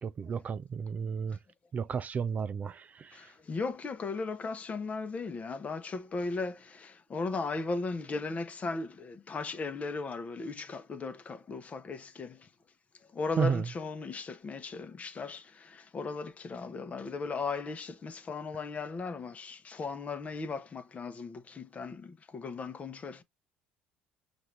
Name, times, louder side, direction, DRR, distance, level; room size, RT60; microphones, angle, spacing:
voice 1, 0.0-1.4 1.7-3.2 13.4-13.6, right 6 dB, 35° right, 0.4 m, -32 dB
voice 2, 3.1-12.4 13.1-23.2, left 4 dB, 30° left, 0.8 m, -37 dB
5.7 x 2.6 x 3.2 m
supercardioid pair, 90°, 4 cm